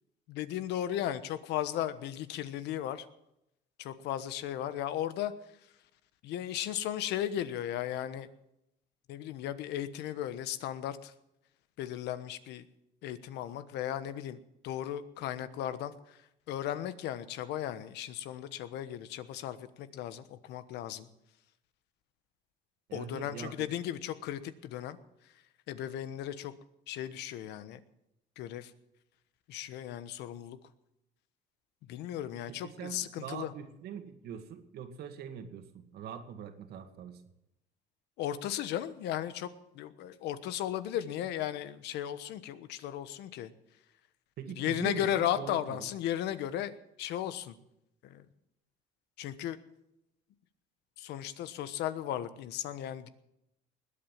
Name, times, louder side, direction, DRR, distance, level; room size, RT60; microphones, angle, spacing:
voice 1, 0.3-3.0 3.8-5.3 6.2-8.3 9.1-11.1 11.8-12.6 13.0-14.4 14.6-15.9 16.5-21.1 22.9-25.0 25.7-26.5 26.9-27.8 28.4-28.7 29.5-30.6 31.9-33.5 38.2-39.5 39.8-43.5 44.6-46.7 47.0-47.5 48.1-48.2 49.2-49.6 51.0-53.1, left 11 dB, 85° left, 13 dB, 1.2 m, -35 dB
voice 2, 22.9-23.7 32.6-37.2 44.4-45.9, right 8 dB, 70° right, 7 dB, 2.1 m, -43 dB
20.5 x 8.7 x 7.5 m, 0.84 s
cardioid pair, 110°, 17 cm